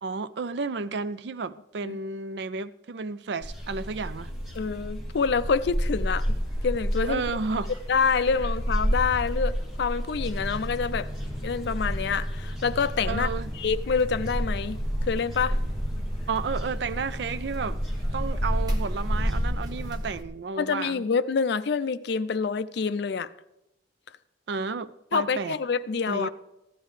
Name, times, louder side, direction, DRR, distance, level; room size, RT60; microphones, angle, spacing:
voice 1, 0.0-4.3 7.0-7.7 13.1-13.5 16.3-17.8 18.1-21.0 24.5-25.6 26.1-26.3, right 4 dB, 60° right, 0.4 m, -32 dB
sound 1, 3.4-19.5, equal, ahead, 2.4 m, -30 dB
voice 2, 4.5-6.3 6.6-7.2 7.9-11.1 11.4-14.8 15.1-15.6 20.6-23.3 25.1-26.3, left 5 dB, 60° left, 0.4 m, -27 dB
sound 2, 5.9-19.4, left 1 dB, 20° left, 1.3 m, -52 dB
sound 3, 10.2-20.2, equal, 20° right, 0.9 m, -38 dB
15.0 x 11.0 x 3.2 m
head